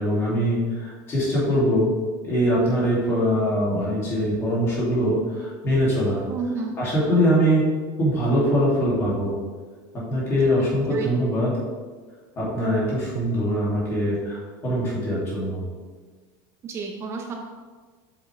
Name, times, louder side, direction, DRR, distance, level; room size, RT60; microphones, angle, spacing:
voice 1, 0.0-1.9 2.2-6.2 6.8-7.6 8.0-9.3 9.9-11.5 12.4-15.6, equal, 25° left, -7 dB, 2.5 m, -22 dB
voice 2, 6.3-6.8 10.5-10.6 10.9-11.2 16.6-17.3, right 4 dB, 25° right, 2 dB, 0.6 m, -31 dB
7.9 x 7.1 x 3.3 m, 1.4 s
cardioid pair, 175°, 11 cm